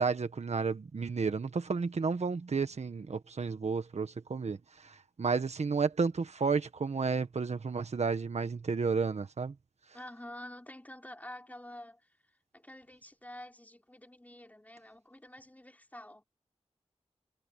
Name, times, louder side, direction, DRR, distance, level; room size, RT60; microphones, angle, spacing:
voice 1, 0.0-9.5, right 5 dB, 75° right, 1.6 m, -32 dB
voice 2, 9.9-12.0 12.5-16.2, left 1 dB, 15° left, 4.3 m, -48 dB
wide cardioid pair, 95°, 11 cm